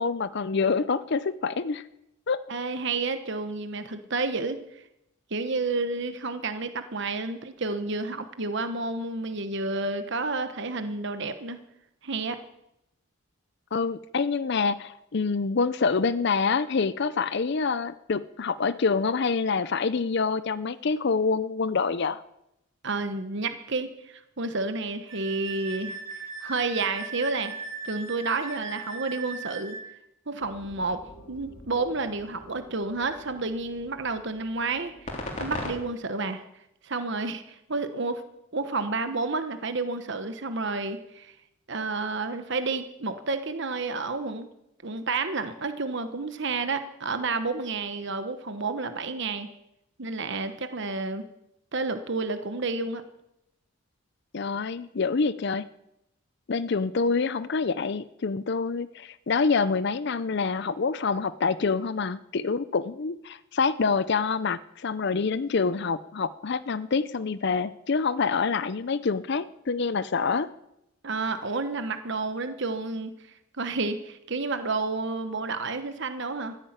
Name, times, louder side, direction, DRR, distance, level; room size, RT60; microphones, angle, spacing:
voice 1, 0.0-1.8 2.3-2.4 13.7-22.2 54.3-55.6 56.5-70.5, left 4 dB, 50° left, 16 dB, 0.5 m, -26 dB
voice 2, 2.5-4.8 5.3-11.6 12.0-12.4 22.8-27.5 27.8-29.8 30.3-35.1 35.4-36.4 36.8-38.2 38.5-41.3 41.7-44.5 44.8-49.5 50.0-51.3 51.7-53.0 71.0-73.2 73.6-76.6, right 3 dB, 55° right, 9 dB, 1.1 m, -30 dB
Wind instrument woodwind instrument, 25.1-29.9, right 4 dB, 15° right, 3.7 m, -38 dB
sound 1, 30.4-35.7, left 1 dB, 35° left, 3.4 m, -41 dB
14.5 x 10.0 x 8.8 m, 0.83 s
head